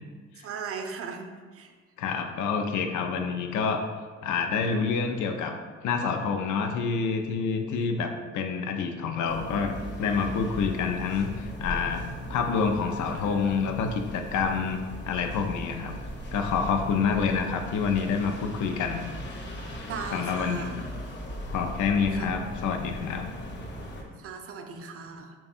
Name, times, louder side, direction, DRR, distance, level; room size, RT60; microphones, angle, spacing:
voice 1, 0.4-1.3 1.5-1.7 19.8-20.7 22.1-22.3 24.2-25.3, right 5 dB, 50° right, 5 dB, 0.5 m, -37 dB
voice 2, 2.0-3.8 4.2-5.5 5.8-12.0 12.3-16.0 16.3-19.0 20.1-20.8 21.5-23.3, left 5 dB, 75° left, 5 dB, 0.5 m, -27 dB
sound 1, 9.2-24.0, equal, 35° left, 0.7 m, -38 dB
3.4 x 2.3 x 4.0 m, 1.5 s
cardioid pair, 90°, 30 cm